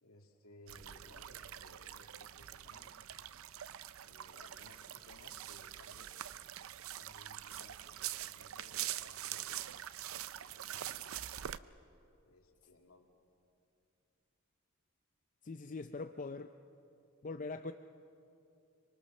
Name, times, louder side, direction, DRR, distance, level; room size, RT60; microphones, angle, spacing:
voice 1, 0.0-3.1 4.0-6.2 7.0-9.8 10.4-11.5 12.2-13.1, left 1 dB, 90° left, 2 dB, 2.6 m, -61 dB
sound 1, 0.7-11.6, right 12 dB, 75° right, 0.5 m, -44 dB
voice 2, 15.4-16.5 17.2-17.7, left 3 dB, 35° left, 8 dB, 0.5 m, -42 dB
25.0 x 23.5 x 6.5 m, 2.7 s
head